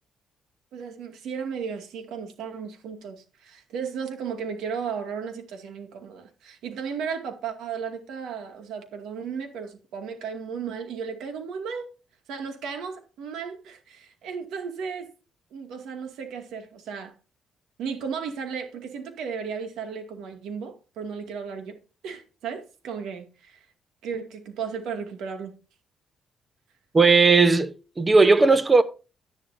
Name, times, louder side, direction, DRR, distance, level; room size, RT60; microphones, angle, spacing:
voice 1, 0.7-11.9 12.3-15.1 15.5-17.1 17.8-21.8 22.0-23.6 24.0-25.5, right 6 dB, 85° right, 2.2 m, -35 dB
voice 2, 26.9-28.8, right 4 dB, 25° right, 1.0 m, -17 dB
11.5 x 10.5 x 2.7 m
cardioid pair, 90°, 0 cm